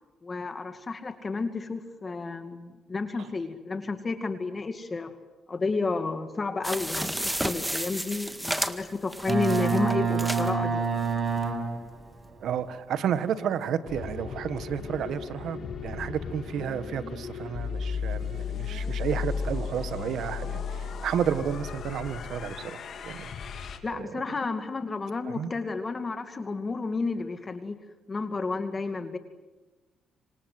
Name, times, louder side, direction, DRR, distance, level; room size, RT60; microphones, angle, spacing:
voice 1, 0.2-5.1 5.5-10.8 23.8-27.8 28.1-29.2, left 3 dB, 30° left, 8 dB, 2.3 m, -31 dB
sound 1, 6.6-10.5 11.0-11.1 11.4-11.5, right 1 dB, 5° right, 1.8 m, -32 dB
Boat Water vehicle, 9.3-12.0, right 5 dB, 35° right, 5.9 m, -27 dB
voice 2, 12.4-23.3 23.9-24.2 25.3-25.5, right 8 dB, 75° right, 12 dB, 1.6 m, -32 dB
sound 2, 13.8-23.8, left 6 dB, 60° left, 3.1 m, -35 dB
27.5 x 25.5 x 7.8 m, 1.2 s
cardioid pair, 90°, 0 cm